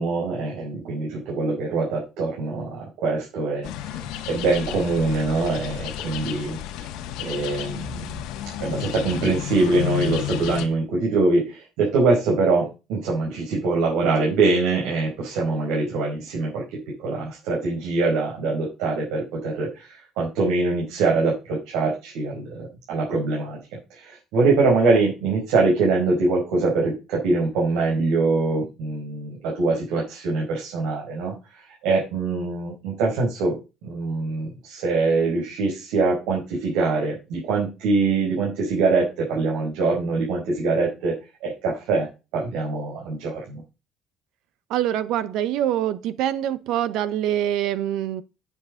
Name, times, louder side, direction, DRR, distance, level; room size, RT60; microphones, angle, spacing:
voice 1, 0.0-6.9 7.2-8.1 8.6-31.3 31.8-33.6 33.8-41.1 41.4-42.1 42.3-43.6, right 3 dB, 80° right, 5.0 m, -23 dB
sound 1, 3.6-10.7, left 12 dB, 75° left, 1.6 m, -32 dB
voice 2, 44.7-48.2, right 11 dB, 60° right, 0.9 m, -24 dB
10.0 x 7.4 x 3.8 m
cardioid pair, 170°, 0 cm